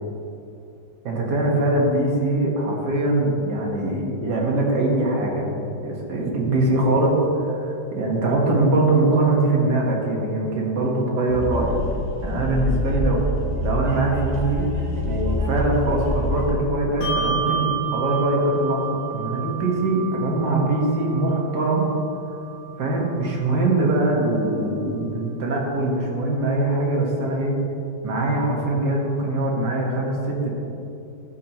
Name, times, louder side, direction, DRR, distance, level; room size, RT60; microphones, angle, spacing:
voice 1, 1.0-5.5 5.8-11.8 12.2-13.3 13.6-14.7 15.0-21.9 22.8-27.6 28.0-30.5, right 2 dB, 55° right, -2 dB, 2.1 m, -22 dB
sound 1, 11.3-16.5, equal, 25° right, 1.1 m, -26 dB
Bell, 17.0-23.9, right 7 dB, 80° left, 1.8 m, -31 dB
15.0 x 7.2 x 3.0 m, 2.7 s
omnidirectional pair, 2.3 m